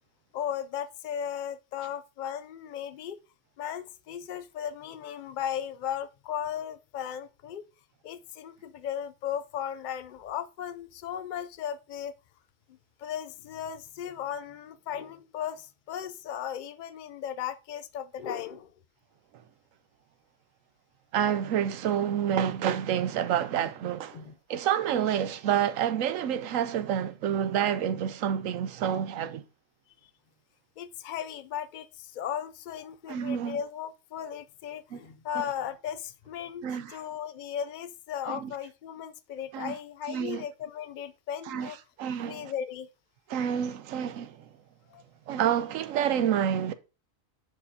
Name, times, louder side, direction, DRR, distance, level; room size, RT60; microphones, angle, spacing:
voice 1, 0.3-3.2 3.6-7.6 8.0-12.1 13.0-18.7 24.1-24.3 30.0-30.1 30.8-41.8 42.3-42.9 44.9-45.0, left 9 dB, 85° left, 0.4 m, -36 dB
voice 2, 21.1-24.2 24.5-29.4 33.1-33.6 34.9-35.0 35.3-35.4 36.6-37.0 38.3-38.5 39.5-39.7 40.1-40.5 41.5-41.7 42.0-42.5 43.3-44.5 45.3-46.7, right 9 dB, 80° right, 1.0 m, -28 dB
10.0 x 4.8 x 2.7 m
omnidirectional pair, 1.4 m